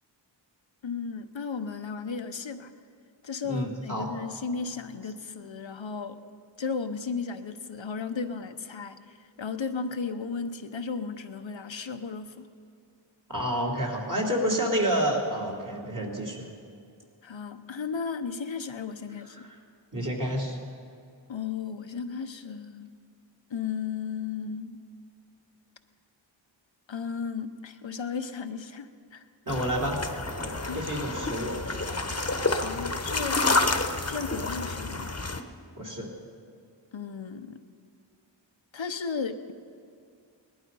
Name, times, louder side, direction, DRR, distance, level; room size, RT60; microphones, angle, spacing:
voice 1, 0.8-2.7 3.2-6.2 6.6-12.4 17.2-19.4 21.3-22.9 23.5-24.8 26.9-29.2 30.7-30.8 32.4-33.5 34.1-35.1 36.9-37.6 38.7-39.5, left 5 dB, 75° left, 8 dB, 0.9 m, -35 dB
voice 2, 3.5-4.1 13.3-16.5 19.3-19.5 19.9-20.6 29.5-30.0 30.4-31.6 35.8-36.1, equal, 40° right, -2 dB, 3.0 m, -29 dB
sound 1, 29.5-35.4, left 3 dB, 30° left, 1.1 m, -29 dB
19.0 x 12.0 x 5.5 m, 2.3 s
wide cardioid pair, 50°, 46 cm